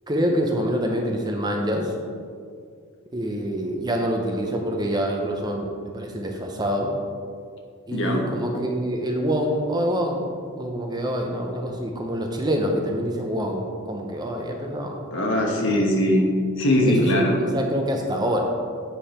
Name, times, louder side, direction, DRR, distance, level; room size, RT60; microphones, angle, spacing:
voice 1, 0.1-1.9 3.1-6.9 7.9-10.3 10.6-15.0 15.7-15.8 16.9-18.4, equal, 20° right, 2 dB, 0.7 m, -26 dB
voice 2, 7.9-8.2 15.1-16.3 16.6-17.3, equal, 60° left, 0 dB, 1.2 m, -20 dB
8.7 x 5.2 x 4.3 m, 2.2 s
head